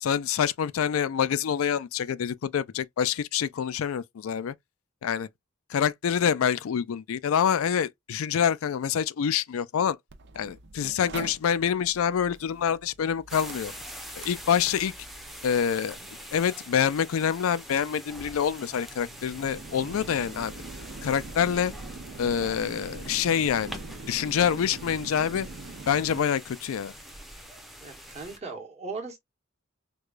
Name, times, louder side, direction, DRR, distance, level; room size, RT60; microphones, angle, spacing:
voice 1, 0.0-4.5 5.0-5.3 5.7-10.0 10.4-13.7 14.2-14.9 15.4-16.0 16.3-20.5 21.0-21.7 22.2-23.8 24.1-25.5 25.9-26.9, left 8 dB, 80° left, 0.4 m, -26 dB
Mechanical fan, 10.1-26.2, right 3 dB, 60° right, 0.6 m, -44 dB
sound 1, 13.3-28.4, equal, ahead, 0.7 m, -44 dB
voice 2, 27.8-29.2, right 4 dB, 30° right, 1.2 m, -38 dB
4.7 x 2.3 x 2.4 m
head